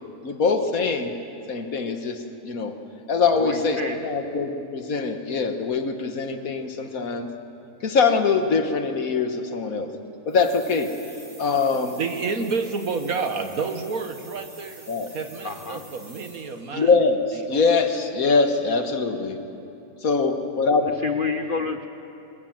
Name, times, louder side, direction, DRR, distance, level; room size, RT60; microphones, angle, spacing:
voice 1, 0.2-1.1 1.5-2.7 3.1-7.3 7.8-9.9 10.3-10.9 11.4-12.0 14.9-15.1 16.7-19.4 20.0-21.1, left 4 dB, 65° left, 6 dB, 1.8 m, -23 dB
voice 2, 3.3-4.1 15.4-15.8 21.0-21.9, left 5 dB, 45° left, 7 dB, 0.7 m, -28 dB
sound 1, 10.3-16.7, right 2 dB, 85° right, 5.6 m, -47 dB
voice 3, 12.0-17.0 17.3-17.7, right 4 dB, 65° right, 7 dB, 1.7 m, -30 dB
23.0 x 22.5 x 7.4 m, 2.8 s
omnidirectional pair, 1.6 m